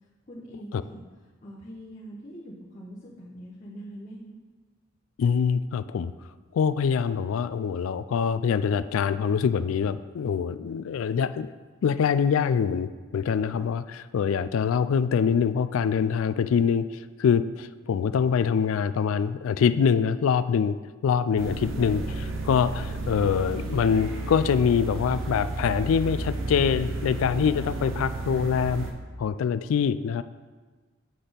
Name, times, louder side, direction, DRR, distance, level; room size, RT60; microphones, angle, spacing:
voice 1, 0.3-1.0 1.4-4.4, right 1 dB, 35° left, -6 dB, 0.9 m, -43 dB
voice 2, 5.2-6.1 6.5-11.5 11.8-16.9 17.2-20.8 21.0-28.9 29.2-30.2, left 6 dB, 85° left, 14 dB, 0.3 m, -24 dB
sound 1, 21.4-28.9, right 2 dB, 70° right, 0.8 m, -32 dB
7.7 x 4.2 x 5.1 m, 1.4 s
head